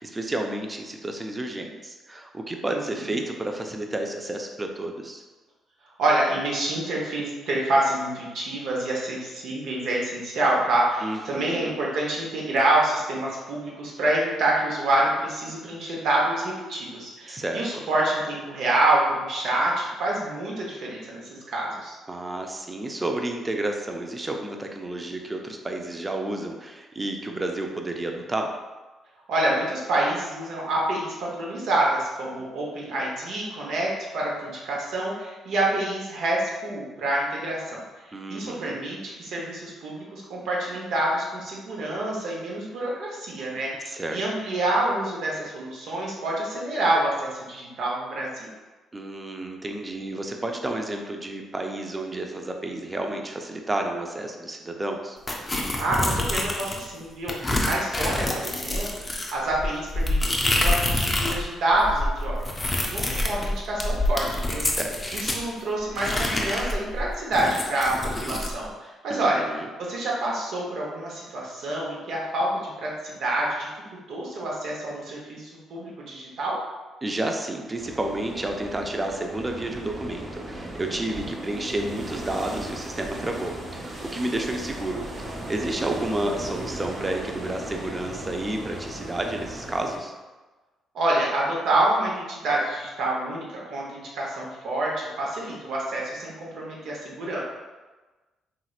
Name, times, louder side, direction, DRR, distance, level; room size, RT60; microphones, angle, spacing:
voice 1, 0.0-5.2 11.0-11.8 17.3-17.8 22.1-28.5 38.1-38.8 43.9-44.2 48.9-55.2 64.6-65.2 69.1-69.7 77.0-90.1, right 1 dB, 25° right, 3 dB, 0.4 m, -31 dB
voice 2, 6.0-22.0 29.3-37.8 38.3-48.5 55.7-64.6 65.1-69.4 69.8-73.7 74.1-76.6 81.5-81.7 90.9-97.4, right 1 dB, 75° right, -3 dB, 0.9 m, -27 dB
sound 1, 55.3-56.9 57.3-61.4 61.7-65.4 65.9-68.5, left 1 dB, 25° left, 0.5 m, -26 dB
sound 2, 77.8-90.0, right 1 dB, 45° right, 1.0 m, -37 dB
3.1 x 2.9 x 2.4 m, 1.2 s
supercardioid pair, 70°, 0 cm